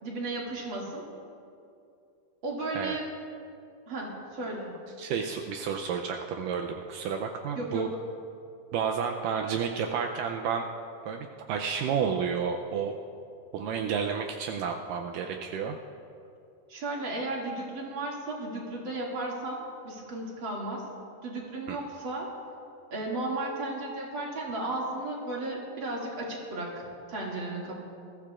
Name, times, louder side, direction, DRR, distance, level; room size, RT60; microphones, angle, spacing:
voice 1, 0.0-1.0 2.4-3.0 3.9-4.7 7.6-7.9 16.7-20.8 21.2-22.3 22.9-27.7, right 2 dB, 40° right, -3 dB, 2.6 m, -34 dB
voice 2, 5.0-7.9 8.7-10.7 11.0-13.0 13.5-15.8 21.7-21.8, right 6 dB, 80° right, 3 dB, 2.1 m, -31 dB
21.0 x 15.0 x 2.5 m, 2.6 s
omnidirectional pair, 4.1 m